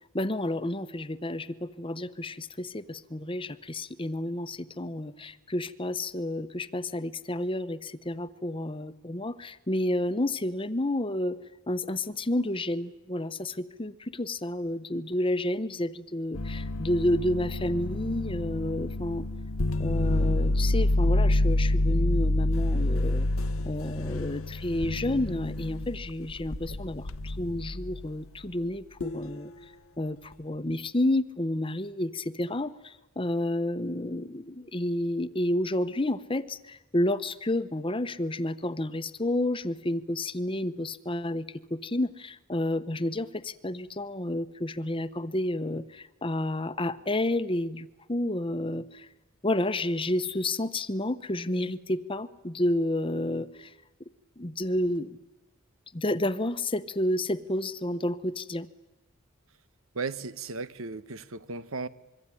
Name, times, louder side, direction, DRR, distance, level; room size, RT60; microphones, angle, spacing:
voice 1, 0.1-11.4 11.7-19.3 19.8-23.3 23.6-29.5 30.0-49.1 49.4-53.7 54.4-55.2 55.9-58.7, left 1 dB, 25° left, 1.0 m, -30 dB
sound 1, 16.3-28.1 29.0-29.3, left 1 dB, 85° left, 1.1 m, -28 dB
voice 2, 59.9-61.9, right 4 dB, 85° right, 1.2 m, -35 dB
25.5 x 23.5 x 9.9 m
head